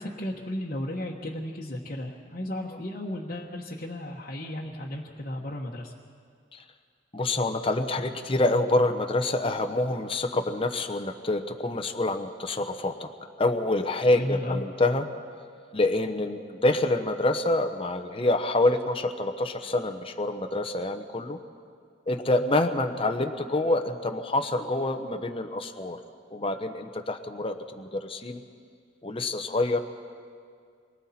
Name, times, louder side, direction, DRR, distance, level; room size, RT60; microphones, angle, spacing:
voice 1, 0.0-5.9 14.2-14.6, left 1 dB, 45° left, -4 dB, 1.3 m, -34 dB
voice 2, 7.1-13.1 13.4-15.1 15.7-21.4 22.1-26.0 26.3-28.4 29.0-29.8, left 2 dB, 30° left, 6 dB, 0.9 m, -26 dB
27.5 x 23.0 x 4.3 m, 2.1 s
head